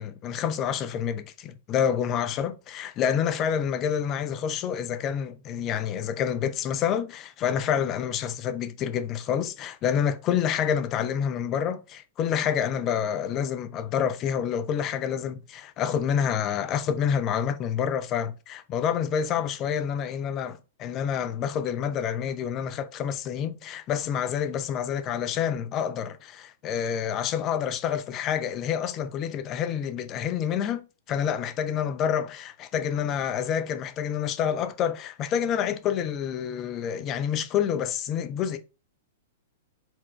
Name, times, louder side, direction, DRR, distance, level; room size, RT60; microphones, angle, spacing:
voice 1, 0.0-30.8 31.1-38.6, left 8 dB, 30° left, 0.6 m, -28 dB
4.5 x 3.7 x 3.1 m
figure-of-eight pair, 105°, 0 cm